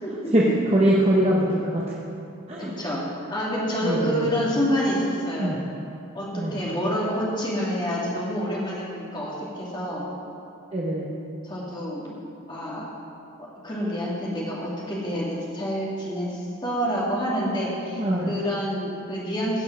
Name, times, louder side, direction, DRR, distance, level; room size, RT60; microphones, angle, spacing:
voice 1, 0.0-0.3 2.6-3.0 3.3-5.6 6.1-10.0 11.4-12.2 12.5-12.9 13.6-19.6, equal, 20° left, -6 dB, 2.2 m, -28 dB
voice 2, 0.7-1.8 2.5-2.7 3.8-4.3 5.4-5.6 6.3-6.5 10.7-11.1 18.0-18.3, right 1 dB, 30° right, -5 dB, 0.9 m, -22 dB
16.0 x 5.3 x 6.0 m, 2.6 s
head